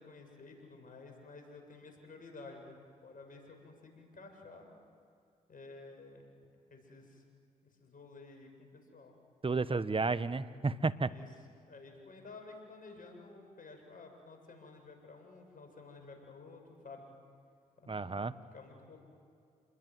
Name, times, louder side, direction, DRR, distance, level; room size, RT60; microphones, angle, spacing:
voice 1, 0.0-2.8 3.0-4.7 5.5-6.3 6.7-7.2 7.8-9.1 11.0-11.3 11.6-17.1 17.8-19.0, left 3 dB, 55° left, 3 dB, 7.5 m, -52 dB
voice 2, 9.4-11.1 17.9-18.3, right 3 dB, 35° right, 13 dB, 1.3 m, -32 dB
28.5 x 21.0 x 9.6 m, 2.5 s
supercardioid pair, 40°, 17 cm